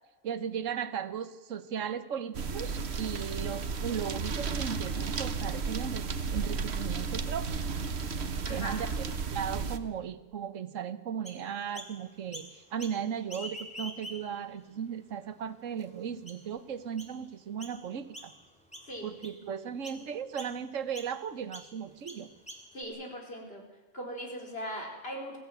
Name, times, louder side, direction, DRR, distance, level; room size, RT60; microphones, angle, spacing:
voice 1, 0.2-7.6 8.5-18.3 19.0-22.3, right 8 dB, 90° right, 12 dB, 1.4 m, -36 dB
sound 1, 2.3-9.8, right 5 dB, 60° right, 1.3 m, -33 dB
voice 2, 8.5-8.8 18.9-19.1 22.7-23.6 23.9-25.4, equal, 50° left, 0 dB, 4.6 m, -39 dB
Chirp tweet, 11.3-11.9 12.3-13.0 13.3-14.5 15.0-15.1 15.8-15.9 16.3-16.6 17.0-17.2 17.6-17.8 18.1-18.5 18.7-19.4 19.8-20.0 20.4-20.5 20.9-21.1 21.5-21.7 22.1-22.8, equal, 5° left, 2.9 m, -45 dB
22.0 x 15.5 x 9.3 m, 1.2 s
omnidirectional pair, 1.3 m